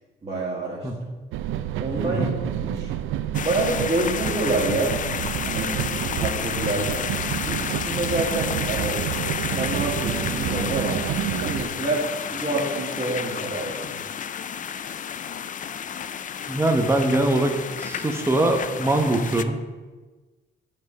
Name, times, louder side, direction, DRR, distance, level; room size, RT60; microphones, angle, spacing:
voice 1, 0.2-0.9 1.8-2.3 2.6-2.9 3.4-5.0 5.4-7.0 7.4-9.0 9.5-11.0 11.4-14.0, right 2 dB, 30° right, -6 dB, 1.8 m, -27 dB
sound 1, 1.3-11.7, right 11 dB, 85° right, 0.5 m, -29 dB
sound 2, 3.3-19.4, left 8 dB, 40° left, 0.4 m, -31 dB
voice 2, 16.5-19.6, right 2 dB, 10° right, 3 dB, 0.9 m, -22 dB
7.6 x 5.3 x 6.0 m, 1.3 s
cardioid pair, 90°, 20 cm